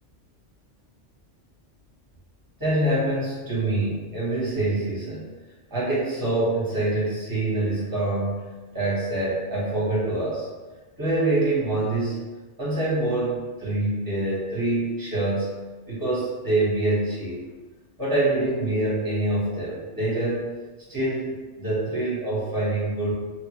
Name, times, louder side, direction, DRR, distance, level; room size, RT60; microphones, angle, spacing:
voice 1, 2.6-5.3 5.7-8.4 8.7-10.5 11.0-12.3 12.6-15.5 15.9-17.4 18.0-20.5 20.9-23.1, right 2 dB, 20° right, -8 dB, 1.0 m, -25 dB
2.8 x 2.3 x 2.9 m, 1.3 s
omnidirectional pair, 1.3 m